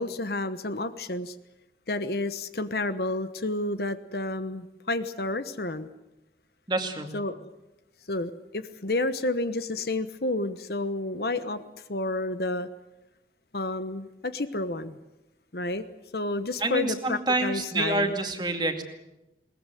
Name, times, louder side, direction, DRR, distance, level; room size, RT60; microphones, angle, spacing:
voice 1, 0.0-1.3 1.9-5.9 7.1-7.5 8.1-11.6 11.9-12.7 13.5-15.0 15.5-15.8 16.1-18.1, left 2 dB, 60° left, 11 dB, 1.2 m, -30 dB
voice 2, 6.7-7.1 16.6-18.8, right 2 dB, 25° right, 5 dB, 2.3 m, -27 dB
21.5 x 19.5 x 9.3 m, 0.95 s
head